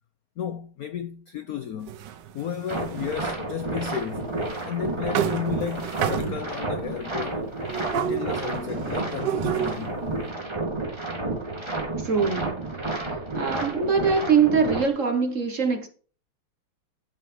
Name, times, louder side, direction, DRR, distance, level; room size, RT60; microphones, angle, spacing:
voice 1, 0.4-2.0 2.3-4.3 4.6-7.5 7.9-10.0, left 8 dB, 70° left, 0.8 m, -33 dB
sound 1, 1.9-3.3 4.1-4.2 4.5-4.7 5.1-6.6 7.7-10.0, right 9 dB, 65° right, 1.3 m, -30 dB
sound 2, 2.7-14.9, right 2 dB, 15° right, 2.2 m, -31 dB
voice 2, 12.0-12.6 12.9-15.9, right 5 dB, 45° right, 1.2 m, -23 dB
12.5 x 5.5 x 5.0 m
omnidirectional pair, 2.3 m